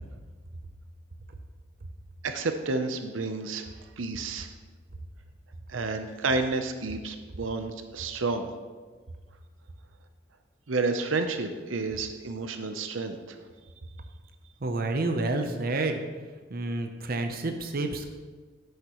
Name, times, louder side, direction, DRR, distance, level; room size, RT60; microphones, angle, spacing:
voice 1, 2.2-3.7 4.0-4.5 5.7-8.5 10.7-13.4, right 3 dB, 85° right, 7 dB, 0.7 m, -30 dB
voice 2, 14.6-16.0 16.5-18.1, right 2 dB, 50° right, 6 dB, 0.7 m, -29 dB
11.0 x 8.2 x 3.1 m, 1.4 s
head